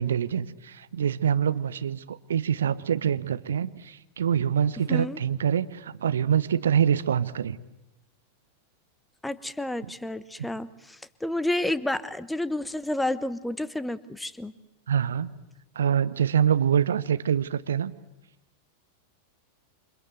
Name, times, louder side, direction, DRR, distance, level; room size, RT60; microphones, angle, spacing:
voice 1, 0.0-7.6 14.9-15.3 15.7-17.9, right 8 dB, 65° right, 14 dB, 1.1 m, -25 dB
voice 2, 9.2-14.5, left 1 dB, 5° left, 16 dB, 1.1 m, -30 dB
28.5 x 26.0 x 7.9 m, 0.97 s
figure-of-eight pair, 90°, 0 cm